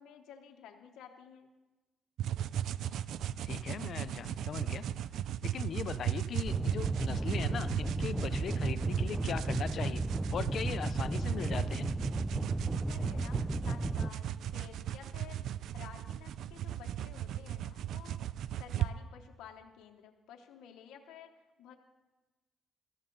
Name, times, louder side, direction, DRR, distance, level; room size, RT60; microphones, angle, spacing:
voice 1, 0.0-1.5 12.7-18.2 18.6-21.3 21.6-21.7, left 8 dB, 85° left, 3 dB, 0.9 m, -52 dB
sound 1, 2.2-18.9, right 11 dB, 75° right, 0.4 m, -36 dB
voice 2, 3.5-4.9 5.4-10.0 10.3-11.9, left 8 dB, 60° left, 14 dB, 0.5 m, -39 dB
sound 2, 6.5-14.1, right 1 dB, 10° right, 0.4 m, -34 dB
17.0 x 13.5 x 3.9 m, 1.2 s
cardioid pair, 90°, 0 cm